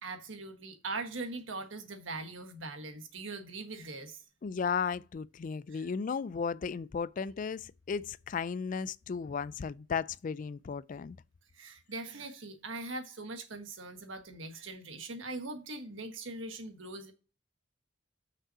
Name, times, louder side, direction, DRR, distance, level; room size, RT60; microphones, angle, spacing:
voice 1, 0.0-4.2 5.7-5.9 11.6-17.1, right 3 dB, 90° right, 1.5 m, -41 dB
voice 2, 4.4-11.2, left 6 dB, 45° left, 0.3 m, -35 dB
6.1 x 5.4 x 5.6 m
head